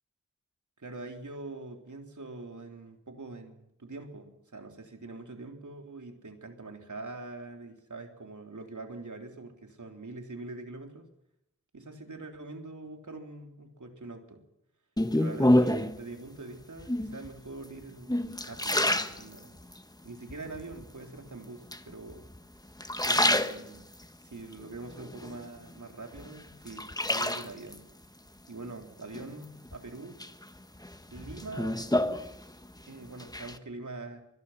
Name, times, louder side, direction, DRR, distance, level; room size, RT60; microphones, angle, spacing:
voice 1, 0.8-11.1 11.7-14.4 15.1-18.2 18.4-19.6 20.0-22.3 23.0-23.9 24.3-27.9 28.5-30.2 31.1-31.8 32.9-34.2, right 3 dB, 75° right, 4 dB, 3.6 m, -44 dB
sound 1, 15.0-16.0 16.8-17.3 17.8-19.8 20.3-20.9 21.7-22.4 22.7-24.0 24.5-25.7 26.1-27.8 29.1-29.8 30.2-32.8 33.1-33.6, left 1 dB, 10° left, 1.3 m, -28 dB
25.0 x 21.0 x 5.8 m, 0.79 s
wide cardioid pair, 70°, 30 cm